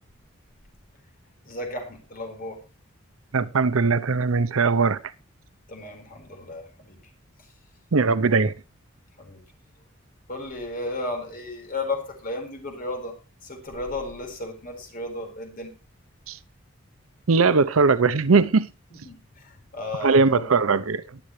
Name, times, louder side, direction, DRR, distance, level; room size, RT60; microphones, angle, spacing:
voice 1, 1.4-2.6 5.7-7.0 9.2-9.4 10.3-13.2 13.4-15.7 18.9-20.6, left 2 dB, 45° left, 4.7 m, -34 dB
voice 2, 3.3-5.0 7.9-8.5 16.3-16.4 17.3-18.7 20.0-21.2, right 4 dB, 90° right, 0.7 m, -20 dB
22.0 x 7.9 x 3.2 m
head